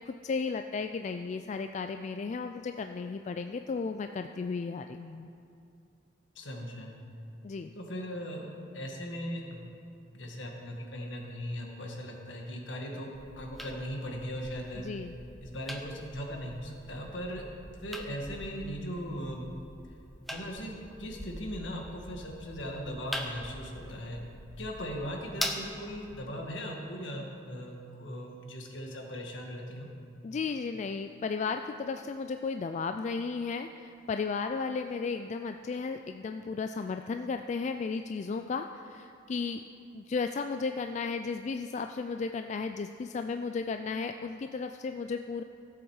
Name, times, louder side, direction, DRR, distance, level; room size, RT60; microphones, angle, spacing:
voice 1, 0.1-5.3 7.4-7.7 14.8-15.1 30.2-39.6 39.9-45.4, left 4 dB, 40° left, 7 dB, 0.3 m, -34 dB
voice 2, 6.4-6.9 7.8-9.7 10.1-14.9 15.4-17.4 17.8-19.5 20.3-24.2 24.6-29.9, equal, 75° left, 1 dB, 1.7 m, -39 dB
sound 1, 13.1-26.1, equal, ahead, 0.8 m, -43 dB
15.0 x 8.0 x 4.8 m, 2.6 s
head